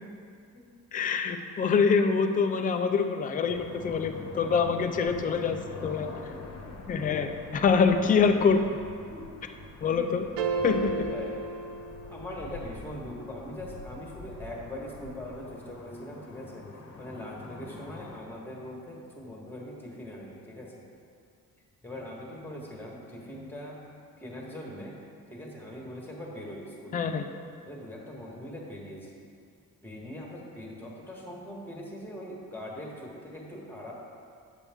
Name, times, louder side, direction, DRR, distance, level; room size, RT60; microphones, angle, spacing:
voice 1, 0.9-6.1 6.9-8.8 9.8-10.3 10.6-10.9 26.9-27.3, left 5 dB, 25° left, 6 dB, 0.4 m, -25 dB
sound 1, 3.5-18.2, left 3 dB, 45° left, 0.9 m, -45 dB
voice 2, 4.2-4.8 6.3-6.6 6.9-7.2 7.6-8.3 9.1-9.2 9.8-10.1 10.6-11.4 12.1-16.7 17.0-20.8 21.8-23.8 24.2-25.0 25.3-27.3 27.6-29.3 29.8-33.9, left 1 dB, 5° left, -2 dB, 1.2 m, -42 dB
sound 2, 10.4-12.6, right 3 dB, 80° right, 0.6 m, -32 dB
8.2 x 7.0 x 3.5 m, 2.3 s
cardioid pair, 140°, 34 cm